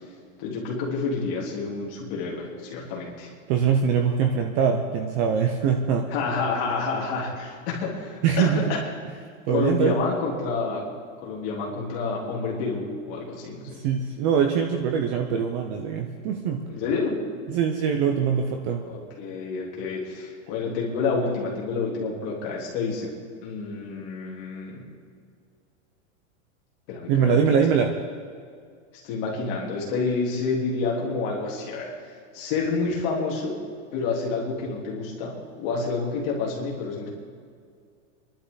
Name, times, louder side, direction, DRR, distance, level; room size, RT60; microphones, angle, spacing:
voice 1, 0.4-3.3 6.1-8.8 9.5-10.9 11.2-13.8 16.7-17.2 18.8-23.1 23.4-24.8 26.9-27.6 29.0-33.6 33.9-37.1, left 4 dB, 35° left, -3 dB, 3.4 m, -29 dB
voice 2, 3.5-6.0 8.2-8.6 9.5-10.0 13.7-16.6 17.5-18.8 27.1-27.9, right 7 dB, 25° right, 4 dB, 0.7 m, -23 dB
27.5 x 11.5 x 4.0 m, 2.2 s
supercardioid pair, 175°, 40 cm